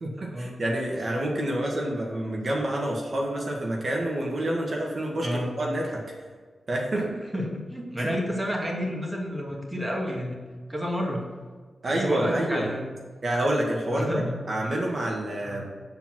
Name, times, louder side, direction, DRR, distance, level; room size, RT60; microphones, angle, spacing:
voice 1, 0.0-6.1 6.7-7.1 8.0-8.1 11.8-12.7 13.2-15.7, right 1 dB, 50° right, -1 dB, 1.7 m, -28 dB
voice 2, 7.3-10.4 10.7-11.2 11.9-12.8 13.9-14.3 15.4-15.6, equal, 10° right, -2 dB, 2.2 m, -30 dB
8.7 x 4.6 x 6.0 m, 1.5 s
cardioid pair, 65°, 0 cm